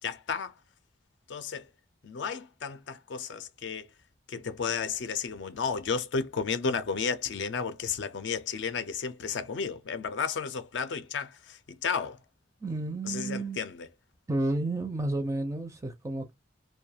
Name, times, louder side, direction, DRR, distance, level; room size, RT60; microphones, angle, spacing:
voice 1, 0.0-0.5 1.3-1.7 2.0-3.9 4.3-12.2 13.1-13.8, left 5 dB, 70° left, 0.4 m, -33 dB
voice 2, 12.6-13.6 14.3-16.3, right 2 dB, 15° right, 0.4 m, -31 dB
2.3 x 2.2 x 2.7 m
head